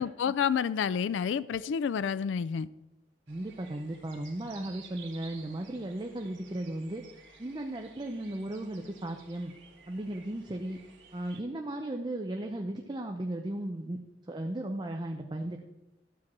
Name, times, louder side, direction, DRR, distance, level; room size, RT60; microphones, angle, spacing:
voice 1, 0.0-2.7, left 7 dB, 80° left, 0.3 m, -29 dB
voice 2, 3.3-7.0 7.4-9.5 9.9-10.8 11.1-14.0 14.3-15.6, right 1 dB, 25° right, 0.6 m, -36 dB
sound 1, 3.3-11.4, right 5 dB, 80° right, 1.8 m, -54 dB
12.5 x 4.6 x 7.4 m
head